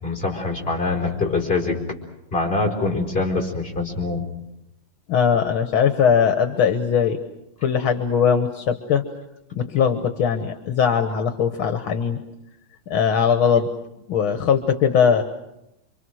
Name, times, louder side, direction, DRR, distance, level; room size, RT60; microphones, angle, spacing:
voice 1, 0.0-1.8 2.3-4.2, left 3 dB, 25° left, 0 dB, 4.4 m, -24 dB
voice 2, 5.1-7.2 7.6-9.0 9.5-12.2 12.9-13.7 14.1-15.2, left 7 dB, 75° left, 8 dB, 2.0 m, -20 dB
28.0 x 24.5 x 6.3 m, 0.88 s
omnidirectional pair, 2.3 m